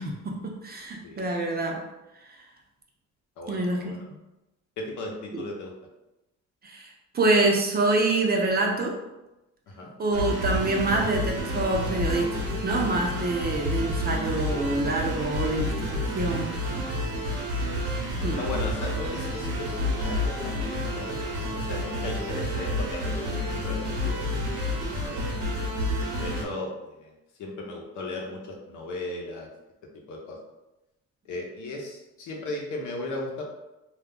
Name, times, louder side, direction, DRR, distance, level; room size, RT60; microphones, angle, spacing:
voice 1, 0.0-1.8 3.5-4.0 5.3-5.4 6.6-9.0 10.0-16.6 18.2-18.4, right 2 dB, 30° right, 1 dB, 0.6 m, -26 dB
voice 2, 3.4-4.0 4.8-5.7 9.7-9.9 18.4-24.2 25.0-25.5 26.2-27.1 27.4-29.5 30.1-30.4 31.2-33.4, left 2 dB, 75° left, 0 dB, 0.8 m, -36 dB
sound 1, 10.1-26.4, left 1 dB, 80° right, 0.9 m, -29 dB
2.4 x 2.1 x 3.6 m, 0.96 s
cardioid pair, 90°, 30 cm